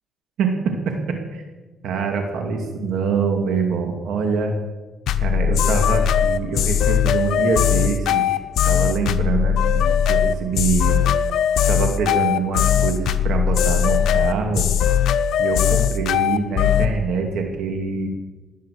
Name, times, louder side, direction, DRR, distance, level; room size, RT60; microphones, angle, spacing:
voice 1, 0.4-1.0 1.3-1.4 1.8-4.6 5.2-8.4 8.6-11.0 11.7-14.7 15.4-18.1, right 5 dB, 75° right, 3 dB, 2.6 m, -24 dB
sound 1, 5.1-16.9, left 9 dB, 80° left, 0.9 m, -19 dB
18.5 x 10.0 x 6.7 m, 1.2 s
cardioid pair, 90°, 0 cm